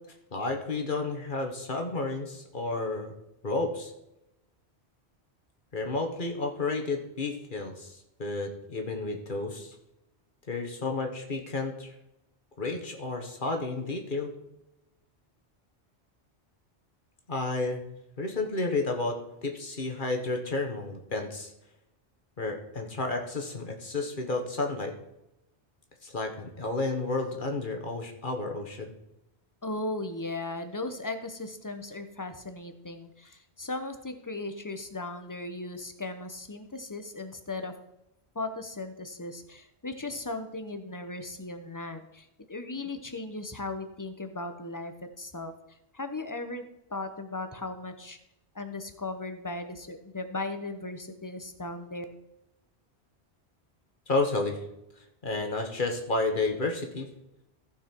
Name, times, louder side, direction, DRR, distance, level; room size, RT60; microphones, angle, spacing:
voice 1, 0.3-3.1 3.4-3.9 5.7-9.7 10.5-11.9 12.6-14.3 17.3-17.8 18.2-21.5 22.4-24.9 26.0-28.9 54.1-54.6 55.2-57.1, left 3 dB, 50° left, 4 dB, 1.5 m, -31 dB
voice 2, 29.6-37.7 38.3-45.5 45.9-46.6 46.9-48.2 48.5-52.0, left 2 dB, 20° left, 8 dB, 0.8 m, -37 dB
15.0 x 5.9 x 4.5 m, 0.87 s
omnidirectional pair, 1.1 m